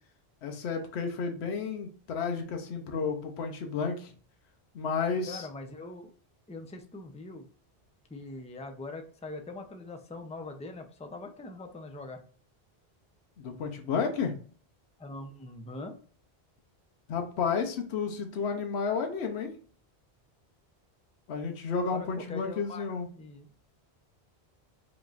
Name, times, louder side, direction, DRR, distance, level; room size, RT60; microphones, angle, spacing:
voice 1, 0.4-4.1 4.7-5.5 13.4-14.3 17.1-19.5 21.3-23.1, left 5 dB, 80° left, 4 dB, 0.9 m, -31 dB
voice 2, 5.3-6.1 6.5-7.5 8.1-12.2 15.0-16.0 21.9-23.5, left 2 dB, 10° left, 5 dB, 0.3 m, -42 dB
5.1 x 3.0 x 2.4 m, 0.42 s
omnidirectional pair, 1.1 m